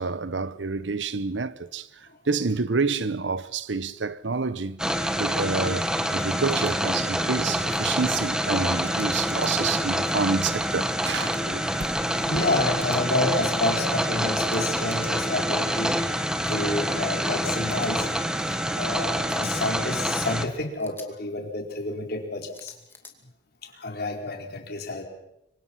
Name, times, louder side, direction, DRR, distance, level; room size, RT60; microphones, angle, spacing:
voice 1, 0.0-1.9 2.3-4.8 5.2-5.9 6.1-11.6 12.1-12.2, right 4 dB, 80° right, 1.0 m, -28 dB
sound 1, 4.8-20.5, equal, 5° right, 1.5 m, -26 dB
sound 2, 6.5-6.7 8.8-9.5 11.2-11.4 12.8-13.0 14.5-15.1 16.4-16.6 17.7-17.9 19.3-19.5 20.8-21.1 22.5-23.1, left 3 dB, 15° left, 2.5 m, -47 dB
sound 3, 7.4-12.6, right 1 dB, 50° right, 2.2 m, -46 dB
voice 2, 11.2-16.0 16.5-18.1 18.5-22.7 23.6-25.0, left 2 dB, 60° left, 4.3 m, -29 dB
26.0 x 24.5 x 5.9 m
head